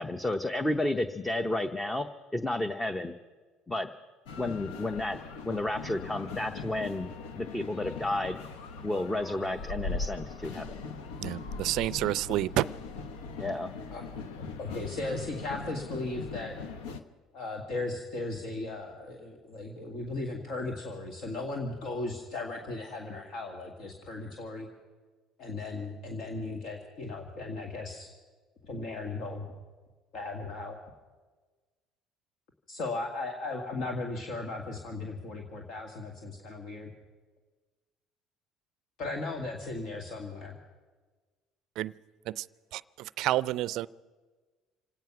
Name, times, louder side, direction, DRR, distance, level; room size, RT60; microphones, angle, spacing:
voice 1, 0.0-2.1 2.3-3.1 3.7-3.9 4.4-5.2 5.4-8.4 8.8-10.8 13.4-13.7, left 1 dB, 15° left, 9 dB, 0.7 m, -31 dB
sound 1, 4.3-17.0, left 4 dB, 85° left, 1.0 m, -40 dB
voice 2, 11.2-12.6 41.8-41.9 42.3-42.4 42.7-43.9, right 15 dB, 70° right, 19 dB, 0.4 m, -29 dB
voice 3, 14.4-16.6 17.3-24.7 25.4-28.1 28.6-29.5 30.1-30.8 32.7-36.9 39.0-40.6, left 2 dB, 65° left, 2 dB, 1.8 m, -36 dB
27.0 x 9.1 x 5.9 m, 1.4 s
supercardioid pair, 90°, 0 cm